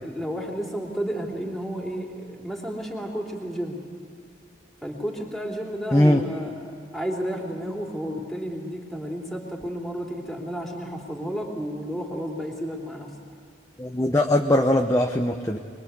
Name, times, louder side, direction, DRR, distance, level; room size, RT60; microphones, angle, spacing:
voice 1, 0.0-3.8 4.8-6.5 6.9-13.1, equal, ahead, -1 dB, 3.3 m, -32 dB
voice 2, 5.9-6.2 13.8-15.6, left 1 dB, 15° left, 3 dB, 0.8 m, -20 dB
24.5 x 22.5 x 8.3 m, 2.4 s
head